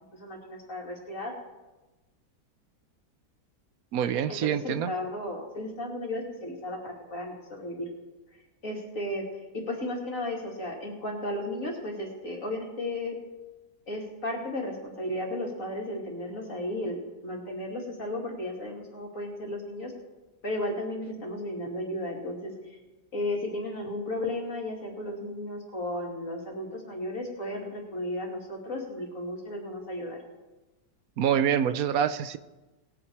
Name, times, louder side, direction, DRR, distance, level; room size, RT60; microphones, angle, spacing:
voice 1, 0.1-1.3 4.3-7.9 8.6-13.1 13.9-19.9 20.4-22.5 23.1-30.2, left 1 dB, 50° left, -1 dB, 2.8 m, -34 dB
voice 2, 3.9-4.9 31.2-32.4, right 9 dB, 65° right, 13 dB, 1.0 m, -26 dB
20.0 x 8.9 x 4.7 m, 1.1 s
omnidirectional pair, 1.8 m